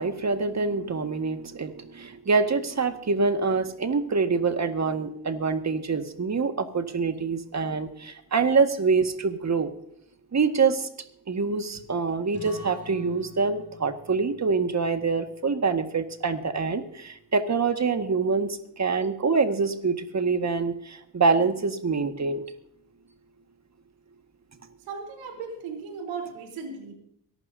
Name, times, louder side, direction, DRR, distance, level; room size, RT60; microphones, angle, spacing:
voice 1, 0.0-9.7 10.3-10.9 11.3-22.4, right 4 dB, 35° right, 8 dB, 1.8 m, -25 dB
sound 1, 12.3-17.5, left 2 dB, 35° left, 5.6 m, -49 dB
voice 2, 24.8-26.9, right 5 dB, 85° right, 3 dB, 3.9 m, -36 dB
23.5 x 12.0 x 2.7 m, 0.74 s
supercardioid pair, 55°, 44 cm